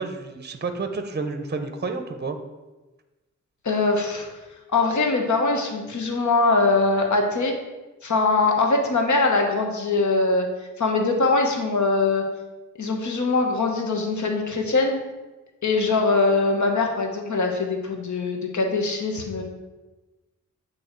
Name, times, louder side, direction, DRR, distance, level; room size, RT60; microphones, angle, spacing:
voice 1, 0.0-2.4, right 4 dB, 35° right, 8 dB, 0.6 m, -30 dB
voice 2, 3.6-4.3 4.7-7.6 8.0-10.5 10.8-12.2 12.8-15.0 15.6-19.4, left 3 dB, 70° left, 3 dB, 1.1 m, -22 dB
8.7 x 3.1 x 4.4 m, 1.1 s
wide cardioid pair, 75°, 30 cm